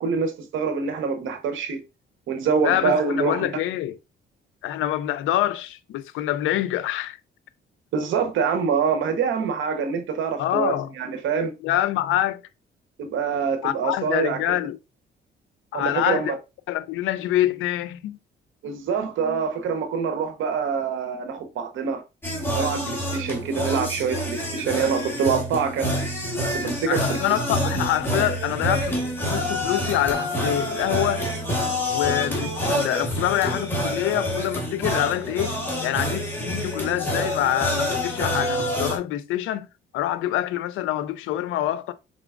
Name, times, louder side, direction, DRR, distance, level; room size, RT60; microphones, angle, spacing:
voice 1, 0.0-1.8 2.3-3.5 7.9-11.5 13.0-14.4 15.7-16.3 18.6-22.0 22.5-26.0 26.4-27.4, right 6 dB, 75° right, 0.9 m, -25 dB
voice 2, 2.6-4.0 4.6-7.2 10.4-10.9 11.6-12.4 13.6-14.8 15.7-16.4 16.7-18.2 26.9-31.3 31.9-39.7 39.9-41.9, left 13 dB, 90° left, 0.5 m, -26 dB
sound 1, 22.2-39.0, equal, 10° left, 1.8 m, -27 dB
4.9 x 3.8 x 2.4 m
cardioid pair, 90°, 20 cm